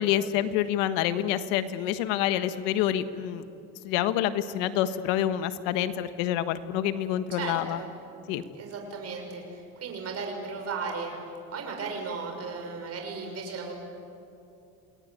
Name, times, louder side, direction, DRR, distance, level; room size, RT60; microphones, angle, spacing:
voice 1, 0.0-3.4 3.8-7.8 8.3-8.4, left 11 dB, 85° left, 11 dB, 1.5 m, -27 dB
voice 2, 7.4-7.9 8.5-11.1 11.5-13.7, right 4 dB, 40° right, 2 dB, 6.3 m, -35 dB
28.0 x 20.0 x 9.6 m, 2.7 s
cardioid pair, 130°, 37 cm